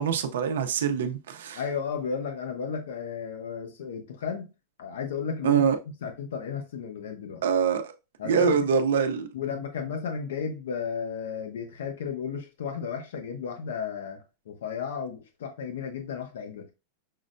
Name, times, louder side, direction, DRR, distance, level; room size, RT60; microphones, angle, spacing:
voice 1, 0.0-1.6 5.4-5.8 7.4-7.9 8.2-9.3, right 6 dB, 90° right, 0.6 m, -24 dB
voice 2, 1.6-4.5 4.8-5.6 6.0-7.4 8.2-8.5 9.3-16.7, left 6 dB, 90° left, 0.8 m, -34 dB
5.8 x 2.1 x 2.5 m
supercardioid pair, 165°, 0 cm